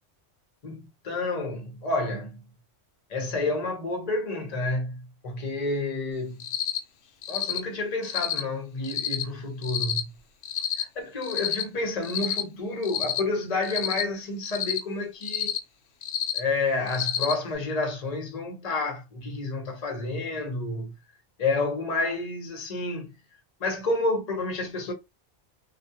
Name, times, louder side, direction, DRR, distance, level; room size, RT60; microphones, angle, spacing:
voice 1, 0.6-2.4 3.1-5.0 5.2-6.4 7.3-10.1 10.8-15.5 16.3-21.0 21.4-23.1 23.6-24.9, left 2 dB, 35° left, 0.8 m, -29 dB
Cricket, 6.4-6.8 7.2-7.6 8.0-8.4 8.8-9.2 9.6-10.0 10.4-10.8 11.2-11.6 12.0-12.4 12.8-13.2 13.6-14.0 14.4-14.8 15.2-15.6 16.0-16.4 16.9-17.3, left 10 dB, 75° left, 0.9 m, -29 dB
2.4 x 2.2 x 2.7 m
omnidirectional pair, 1.3 m